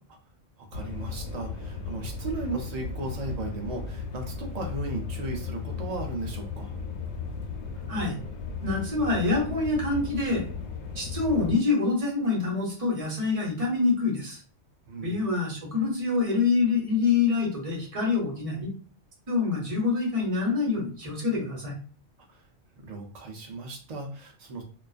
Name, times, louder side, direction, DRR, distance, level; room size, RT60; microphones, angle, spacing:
voice 1, 0.6-6.8 14.9-15.1 22.3-22.4 22.8-24.6, right 2 dB, 75° right, 2 dB, 0.3 m, -36 dB
sound 1, 0.7-11.5, left 5 dB, 90° left, 1.0 m, -36 dB
voice 2, 7.9-8.2 8.6-10.5 10.9-14.4 15.0-18.7 19.3-21.8, left 4 dB, 35° right, -3 dB, 0.7 m, -26 dB
2.3 x 2.2 x 2.3 m, 0.40 s
omnidirectional pair, 1.3 m